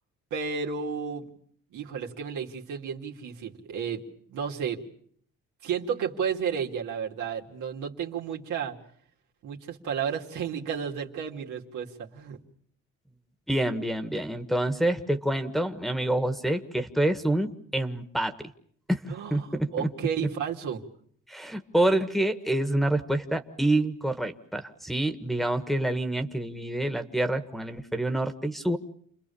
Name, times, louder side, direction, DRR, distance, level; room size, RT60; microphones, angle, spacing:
voice 1, 0.3-1.3 1.7-4.0 4.3-4.8 5.6-8.7 9.4-12.4 19.1-19.5 19.7-20.8, right 7 dB, 80° right, 0 dB, 2.7 m, -32 dB
voice 2, 13.5-18.3 18.9-19.9 20.2-20.3 21.3-28.8, right 1 dB, ahead, 5 dB, 1.6 m, -27 dB
29.5 x 21.5 x 7.1 m, 0.64 s
cardioid pair, 90°, 30 cm